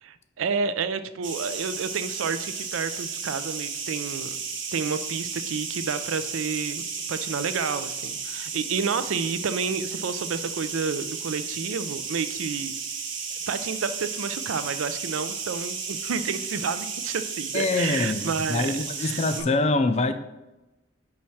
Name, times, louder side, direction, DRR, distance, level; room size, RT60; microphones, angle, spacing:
voice 1, 0.0-4.4 4.7-12.7 13.5-18.7 19.0-19.5, right 5 dB, 85° right, 12 dB, 0.4 m, -30 dB
sound 1, 1.2-19.4, right 5 dB, 70° right, 1.1 m, -33 dB
voice 2, 17.5-20.1, left 3 dB, 35° left, 9 dB, 0.4 m, -24 dB
5.9 x 3.2 x 5.5 m, 0.99 s
head